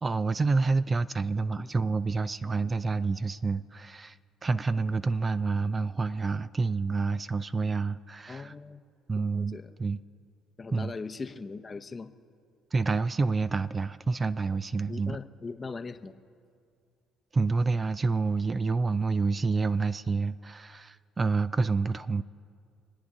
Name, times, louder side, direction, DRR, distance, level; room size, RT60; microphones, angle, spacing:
voice 1, 0.0-8.6 9.1-10.0 10.7-10.9 12.7-15.2 17.3-22.2, right 4 dB, 30° right, 14 dB, 0.4 m, -28 dB
voice 2, 8.3-8.8 9.1-9.7 10.6-12.1 14.9-16.1, left 4 dB, 30° left, 9 dB, 0.8 m, -40 dB
27.0 x 9.4 x 3.7 m, 2.3 s
hypercardioid pair, 60°, 0 cm